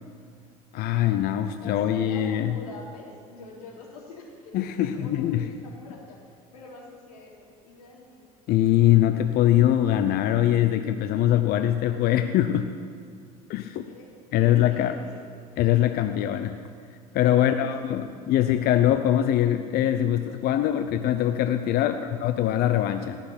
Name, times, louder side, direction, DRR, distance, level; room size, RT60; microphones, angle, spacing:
voice 1, 0.7-2.6 4.5-5.5 8.5-12.7 13.5-13.9 14.3-15.0 15.6-16.6 17.1-23.2, left 12 dB, 55° left, 9 dB, 0.8 m, -22 dB
voice 2, 1.6-4.5 4.8-6.2 6.5-7.3 7.6-8.2 13.9-14.1 14.3-15.2 17.3-18.1 21.9-22.0, left 3 dB, 85° left, -2 dB, 3.6 m, -44 dB
18.0 x 6.6 x 9.8 m, 2.1 s
hypercardioid pair, 75°, 19 cm